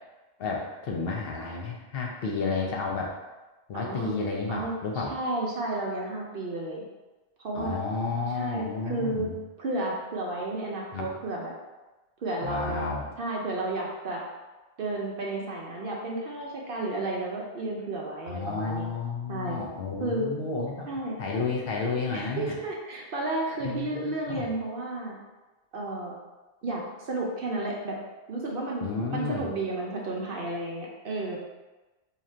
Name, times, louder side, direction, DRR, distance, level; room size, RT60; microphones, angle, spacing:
voice 1, 0.4-3.1 3.7-5.1 7.5-9.3 10.9-11.1 12.4-13.1 18.3-20.9 21.2-22.6 23.6-24.4 28.8-29.5, left 4 dB, 65° left, -1 dB, 0.7 m, -31 dB
voice 2, 3.7-4.2 4.5-6.8 7.4-7.8 8.3-9.3 9.6-11.5 12.2-12.9 13.2-14.2 14.8-18.9 19.3-19.6 20.0-20.3 20.9-21.2 22.1-25.2 25.7-26.1 26.6-28.0 28.3-28.8 29.1-31.4, right 2 dB, 60° right, -2 dB, 0.8 m, -32 dB
2.8 x 2.5 x 4.3 m, 1.1 s
omnidirectional pair, 1.2 m